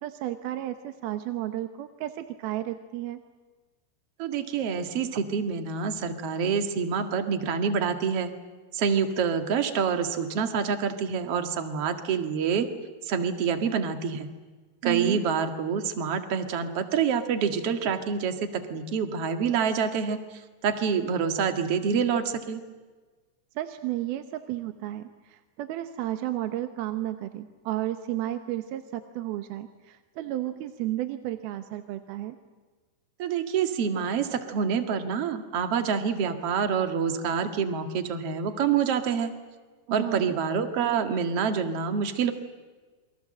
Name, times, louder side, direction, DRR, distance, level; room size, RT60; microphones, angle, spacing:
voice 1, 0.0-3.2 14.8-15.2 23.6-32.4 39.9-40.4, right 14 dB, 70° right, 9 dB, 2.8 m, -33 dB
voice 2, 4.2-8.3 8.7-12.7 13.0-14.3 14.8-20.2 20.6-22.6 33.2-39.3 39.9-42.3, right 6 dB, 45° right, 7 dB, 2.3 m, -27 dB
29.0 x 23.5 x 7.7 m, 1.3 s
omnidirectional pair, 4.9 m